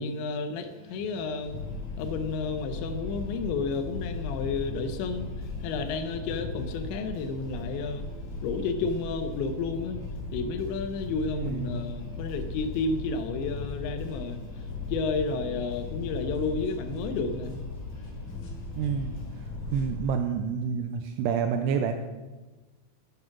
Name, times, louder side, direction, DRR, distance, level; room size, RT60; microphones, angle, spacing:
voice 1, 0.0-1.6 2.0-5.3 5.6-8.1 8.4-10.0 10.3-14.4 14.9-17.6, left 4 dB, 80° left, 8 dB, 3.0 m, -31 dB
sound 1, 0.6-19.4, left 1 dB, 35° left, 1.2 m, -50 dB
sound 2, 1.4-20.0, left 3 dB, 55° left, 2.4 m, -37 dB
voice 2, 11.3-11.8 18.8-19.1 19.7-21.9, right 7 dB, 85° right, 6 dB, 2.4 m, -28 dB
9.6 x 8.8 x 5.9 m, 1.2 s
omnidirectional pair, 5.3 m